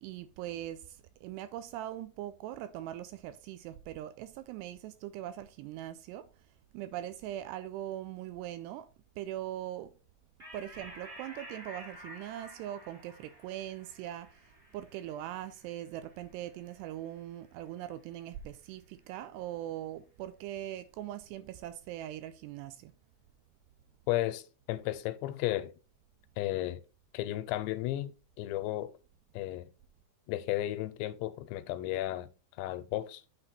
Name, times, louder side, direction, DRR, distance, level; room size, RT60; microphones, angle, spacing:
voice 1, 0.0-6.3 6.7-8.9 9.2-9.9 10.5-14.3 14.7-22.9, right 12 dB, 80° right, 2.5 m, -41 dB
sound 1, 10.4-17.3, right 1 dB, 20° right, 1.4 m, -51 dB
voice 2, 24.1-25.7 26.4-26.8 27.1-29.0 29.3-29.7 30.3-32.3 32.6-33.2, left 15 dB, 85° left, 2.9 m, -34 dB
8.7 x 4.2 x 4.2 m
omnidirectional pair, 5.1 m